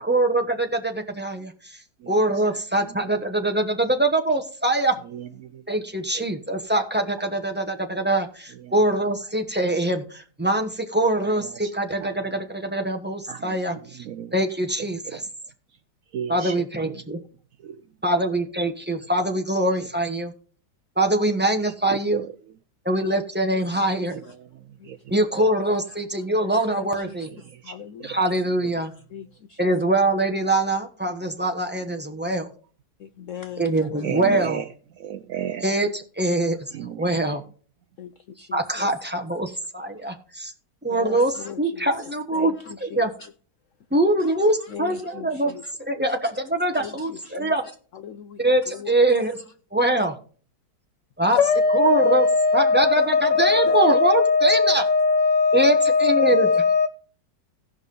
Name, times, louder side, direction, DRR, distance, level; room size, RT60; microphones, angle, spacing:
voice 1, 0.1-1.5 2.1-4.9 5.7-14.0 14.3-15.2 16.3-17.2 18.0-20.3 21.0-22.2 22.8-24.2 25.1-27.3 28.0-28.9 29.6-32.5 33.6-34.6 35.6-37.4 38.5-40.5 40.8-42.5 42.8-43.1 43.9-45.6 45.9-47.6 48.4-49.4 49.7-50.1 51.2-51.4 51.7-52.3 52.5-54.8 55.5-56.5, right 1 dB, 10° right, 0.6 m, -23 dB
voice 2, 5.1-5.8 11.6-11.7 12.0-12.2 13.3-13.6 14.0-14.3 16.1-16.6 16.8-16.9 17.6-17.8 21.9-22.3 24.1-24.2 24.9-25.0 25.3-25.5 27.6-28.2 34.0-34.6 35.0-35.6 36.7-37.1, right 9 dB, 70° right, 0.8 m, -33 dB
voice 3, 26.3-27.1 27.6-28.1 29.1-29.7 33.0-33.6 33.9-34.1 38.0-38.1 38.4-38.9 40.9-41.9 42.3-43.3 44.2-44.3 44.7-45.6 46.7-47.2 48.0-48.9 51.3-56.9, left 4 dB, 75° left, 0.7 m, -23 dB
16.5 x 5.7 x 3.7 m
omnidirectional pair, 1.9 m